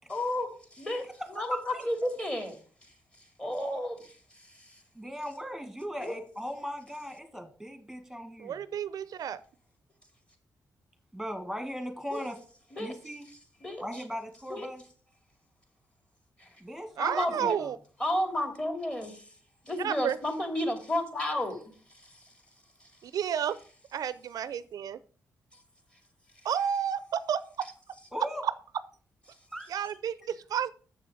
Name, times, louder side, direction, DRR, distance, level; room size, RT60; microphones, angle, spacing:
voice 1, 0.1-0.5 0.8-2.6 3.4-4.1 4.5-4.8 6.0-6.2 12.1-12.2 12.7-12.9 13.6-14.0 14.5-14.7 17.0-17.6 18.0-19.2 19.6-21.7 22.0-22.1, left 1 dB, 15° left, 6 dB, 2.5 m, -32 dB
voice 2, 1.4-1.9 5.0-8.6 11.1-12.4 12.8-13.3 13.8-14.8 16.6-17.7 28.1-28.4 29.5-29.8 30.2-30.3, equal, ahead, 7 dB, 1.9 m, -38 dB
voice 3, 8.4-9.4 17.0-17.8 19.8-20.2 23.0-23.6 23.9-25.0 26.4-27.7 28.4-28.5 29.7-30.7, right 8 dB, 70° right, 16 dB, 0.5 m, -31 dB
7.3 x 6.9 x 4.9 m, 0.41 s
cardioid pair, 75°, 7 cm